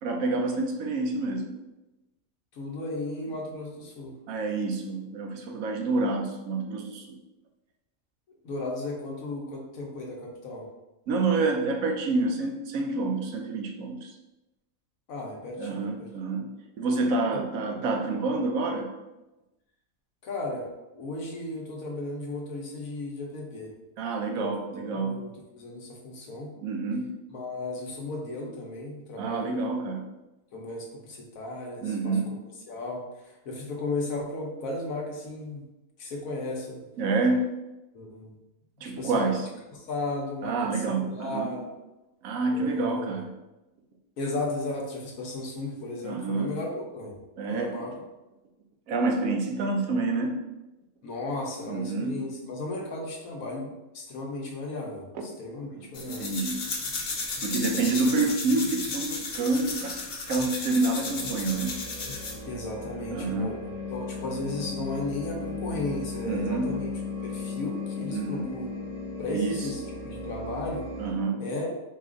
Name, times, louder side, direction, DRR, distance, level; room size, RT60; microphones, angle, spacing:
voice 1, 0.0-1.5 4.3-7.1 11.1-14.1 15.6-16.5 16.8-18.9 24.0-25.2 26.6-27.1 29.2-30.1 31.8-32.3 37.0-37.5 38.8-39.5 40.4-41.6 42.2-43.3 46.0-46.5 47.4-47.9 48.9-50.4 51.7-52.2 55.1-55.2 56.1-56.6 57.4-60.0 60.3-61.7 63.1-63.5 66.3-66.7 68.1-68.5 69.3-69.7 71.0-71.4, right 3 dB, 80° right, 3 dB, 1.0 m, -28 dB
voice 2, 2.5-4.1 8.4-10.6 15.1-16.1 17.3-17.4 17.7-17.8 20.2-20.7 20.9-23.7 24.4-24.5 24.8-26.5 27.3-29.7 30.5-32.1 32.7-35.6 36.0-36.9 37.9-38.3 38.8-39.3 39.7-41.6 42.5-43.2 44.2-47.1 47.5-47.9 51.0-53.7 53.9-56.3 57.8-58.1 62.4-63.6 63.9-66.9 67.2-68.7 69.2-70.8 71.4-71.8, left 2 dB, 80° left, 0 dB, 1.2 m, -35 dB
sound 1, 55.9-62.4, left 3 dB, 50° left, 0.8 m, -34 dB
sound 2, 61.0-71.1, left 3 dB, 60° right, 0.4 m, -36 dB
4.1 x 2.4 x 3.7 m, 1.0 s
omnidirectional pair, 1.4 m